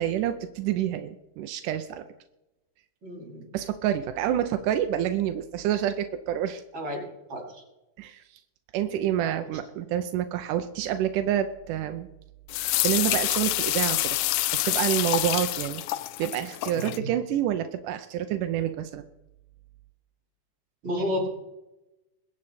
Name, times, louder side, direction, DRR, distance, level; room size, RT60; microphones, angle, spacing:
voice 1, 0.0-2.0 3.5-6.6 8.0-8.2 8.7-12.1 12.8-14.2 14.6-15.8 16.2-19.0, right 11 dB, 90° right, 8 dB, 2.3 m, -28 dB
voice 2, 3.0-3.5 6.7-7.6 16.7-16.9 20.8-21.3, left 1 dB, 45° right, 0 dB, 5.6 m, -31 dB
sound 1, 12.5-17.0, left 17 dB, 85° left, 2.0 m, -27 dB
22.0 x 8.6 x 4.3 m, 0.96 s
omnidirectional pair, 3.6 m